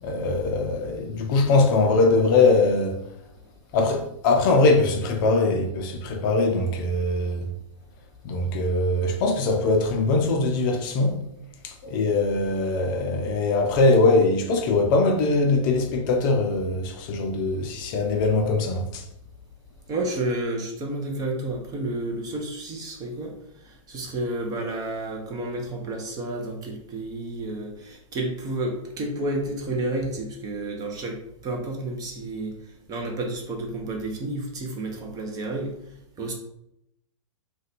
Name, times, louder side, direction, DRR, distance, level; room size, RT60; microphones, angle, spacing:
voice 1, 0.0-3.0 3.7-7.5 8.2-11.2 11.6-19.0, left 3 dB, 40° left, 0.4 m, -22 dB
voice 2, 19.9-32.6 32.9-35.7 36.2-36.3, right 2 dB, 20° right, 0.6 m, -31 dB
2.5 x 2.2 x 4.0 m
hypercardioid pair, 130°, 17 cm